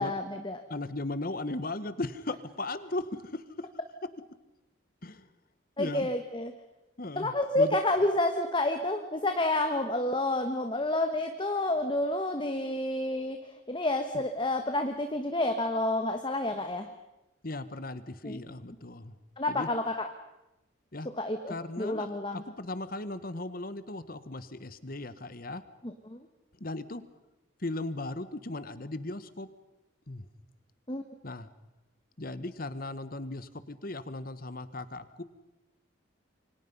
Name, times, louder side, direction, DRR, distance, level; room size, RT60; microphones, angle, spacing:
voice 1, 0.0-0.6 5.8-6.5 7.2-13.4 13.7-16.9 18.2-18.4 19.4-20.1 21.2-22.4 25.8-26.2 30.9-31.0, left 2 dB, 25° left, 7 dB, 1.3 m, -29 dB
voice 2, 0.7-3.7 5.0-5.3 5.8-6.1 7.0-7.8 17.4-19.1 19.5-19.7 20.9-21.1 21.5-25.6 26.6-27.0 27.6-29.5 30.1-30.3 31.2-31.5 32.2-35.2, left 2 dB, 45° left, 13 dB, 1.3 m, -37 dB
28.0 x 24.5 x 5.5 m, 0.97 s
head